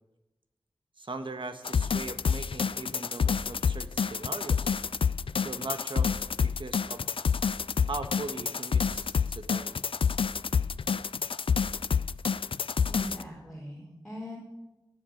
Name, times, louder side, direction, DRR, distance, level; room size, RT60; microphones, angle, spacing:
voice 1, 1.0-4.7 5.4-6.1 6.4-7.0 7.9-9.7, right 3 dB, 65° right, 7 dB, 1.4 m, -39 dB
sound 1, 1.6-13.2, left 6 dB, 75° left, 0.4 m, -28 dB
voice 2, 12.8-14.4, left 1 dB, 5° left, -4 dB, 4.2 m, -41 dB
18.5 x 7.3 x 8.6 m, 1.0 s
wide cardioid pair, 75°, 9 cm